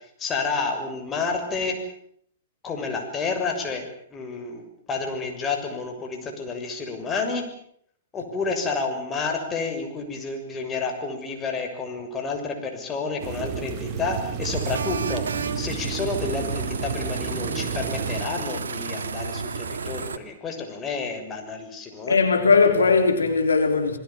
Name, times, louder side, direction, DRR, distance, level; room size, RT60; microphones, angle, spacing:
voice 1, 0.2-1.8 2.6-7.5 8.1-15.2 15.6-22.2, left 4 dB, 20° left, 6.8 m, -30 dB
sound 1, 13.2-18.2, right 7 dB, 35° right, 3.9 m, -32 dB
sound 2, 14.4-20.2, right 5 dB, 75° right, 2.0 m, -31 dB
voice 2, 22.1-24.0, left 4 dB, 80° left, 3.4 m, -19 dB
28.0 x 21.5 x 7.4 m
figure-of-eight pair, 110°, 0 cm